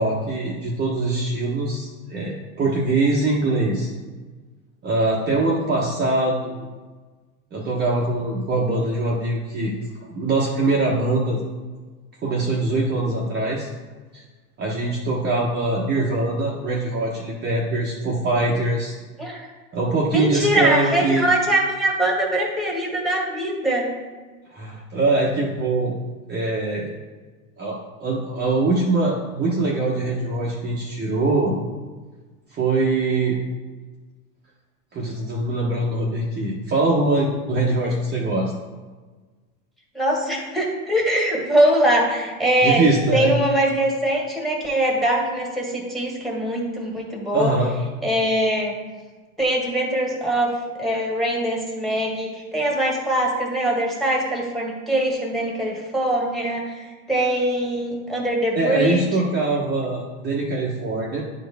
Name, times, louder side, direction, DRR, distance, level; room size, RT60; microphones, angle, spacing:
voice 1, 0.0-3.9 4.8-6.7 7.5-9.7 10.1-11.4 12.2-13.7 14.1-14.2 14.6-18.9 19.7-21.3 24.5-26.0 26.3-26.9 27.6-31.5 32.5-33.4 34.9-38.5 42.6-43.3 47.3-47.7 58.5-61.2, right 2 dB, 25° right, -5 dB, 1.0 m, -23 dB
voice 2, 20.1-23.9 39.9-42.8 43.1-47.5 48.0-48.8 49.4-59.1, right 1 dB, ahead, -1 dB, 1.5 m, -22 dB
9.8 x 4.5 x 3.4 m, 1.3 s
supercardioid pair, 120°, 43 cm